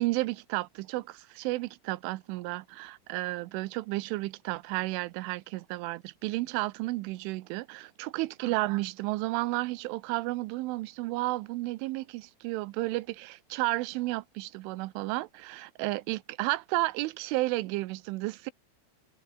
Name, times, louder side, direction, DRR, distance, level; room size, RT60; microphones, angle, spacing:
voice 1, 0.0-18.5, right 20 dB, 90° right, 3.2 m, -32 dB
omnidirectional pair, 5.6 m